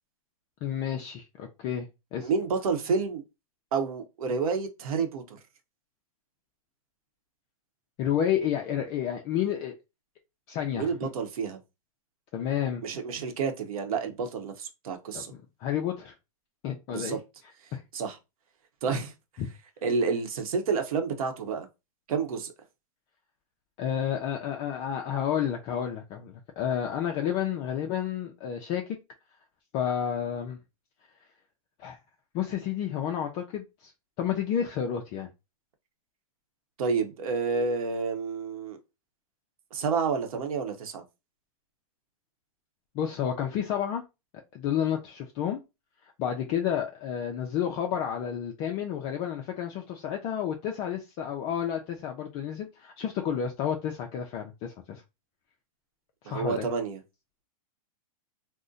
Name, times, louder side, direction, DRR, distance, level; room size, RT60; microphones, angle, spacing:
voice 1, 0.6-2.3 8.0-9.8 10.5-10.9 12.3-12.8 15.1-15.2 15.6-16.1 16.6-17.2 17.7-17.8 19.4-19.5 23.8-29.0 29.7-30.6 31.8-32.0 32.3-33.9 34.2-35.3 42.9-44.0 44.5-45.6 46.0-55.0 56.2-56.7, left 9 dB, 30° left, 0.4 m, -30 dB
voice 2, 2.2-3.2 3.7-5.4 10.7-11.6 12.8-15.3 16.9-17.2 17.9-18.2 18.8-19.1 19.8-21.7 22.1-22.5 36.8-38.8 39.7-41.0 56.3-57.0, right 5 dB, 70° right, 0.8 m, -29 dB
2.6 x 2.1 x 3.7 m
hypercardioid pair, 140°, 19 cm